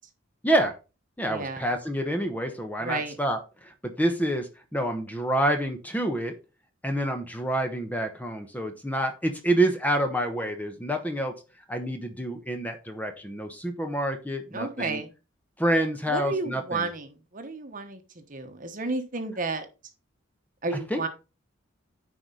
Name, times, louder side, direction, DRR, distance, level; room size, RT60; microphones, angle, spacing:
voice 1, 0.4-0.8 1.2-6.3 6.8-11.3 11.7-15.0 15.6-16.9 20.9-21.1, right 1 dB, 10° left, 5 dB, 1.0 m, -27 dB
voice 2, 1.3-1.7 2.8-3.2 14.5-15.1 16.1-19.7 20.6-21.1, right 3 dB, 40° right, 7 dB, 1.1 m, -32 dB
9.7 x 4.8 x 3.9 m, 0.30 s
head